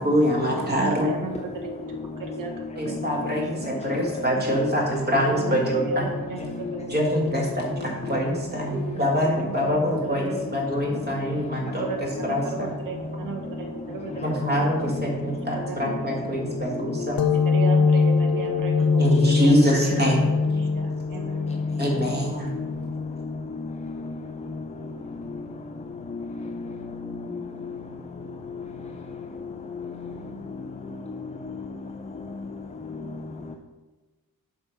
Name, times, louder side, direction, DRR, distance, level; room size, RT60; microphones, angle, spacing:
voice 1, 0.0-1.1 2.8-6.1 6.9-12.7 14.2-17.2 19.0-20.3 21.8-22.6, equal, 25° right, -1 dB, 1.9 m, -25 dB
voice 2, 0.6-3.8 4.3-4.5 5.3-7.1 7.8-7.9 8.3-9.0 9.3-10.4 10.9-11.0 11.6-14.9 15.2-16.3 17.3-20.0 20.6-21.5, right 5 dB, 65° right, 4 dB, 1.0 m, -36 dB
voice 3, 2.6-4.0 6.4-6.9 10.6-10.7 11.1-11.8 12.4-12.6 13.4-14.4 14.9-15.6 15.9-16.2 16.5-17.2 19.1-19.4 20.6-22.0 22.4-33.6, left 3 dB, 20° left, 4 dB, 0.4 m, -36 dB
sound 1, 17.2-24.5, left 4 dB, 80° left, 0.6 m, -24 dB
7.3 x 5.0 x 5.6 m, 1.2 s
wide cardioid pair, 150°, 35 cm